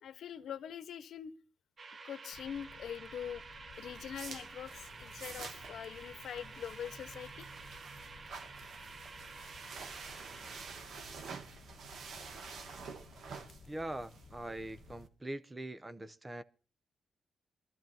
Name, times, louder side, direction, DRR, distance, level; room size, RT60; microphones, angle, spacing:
voice 1, 0.0-1.3 2.0-3.4 3.8-7.5, left 8 dB, 75° left, 1.1 m, -43 dB
sound 1, 1.8-10.7, right 4 dB, 35° right, 1.0 m, -51 dB
sound 2, 2.3-15.0, left 6 dB, 50° left, 0.9 m, -58 dB
sound 3, 3.7-15.1, right 5 dB, 65° right, 2.1 m, -49 dB
voice 2, 13.7-16.4, right 1 dB, 15° right, 0.8 m, -42 dB
25.0 x 13.5 x 2.8 m
wide cardioid pair, 155°, 0 cm